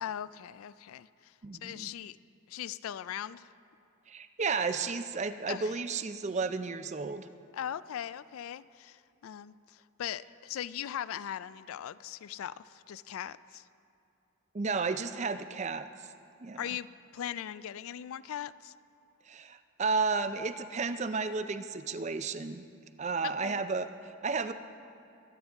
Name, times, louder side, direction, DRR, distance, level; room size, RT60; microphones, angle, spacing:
voice 1, 0.0-1.3 1.6-2.2 2.5-3.5 4.8-4.9 5.5-5.7 7.5-13.7 16.6-16.9 17.1-18.7 23.2-23.6, left 10 dB, 75° left, 17 dB, 0.3 m, -39 dB
voice 2, 1.4-1.9 4.1-7.3 14.5-15.9 16.4-16.8 19.3-22.7 23.0-24.5, right 4 dB, 30° right, 10 dB, 0.4 m, -33 dB
23.0 x 8.9 x 3.5 m, 2.7 s
head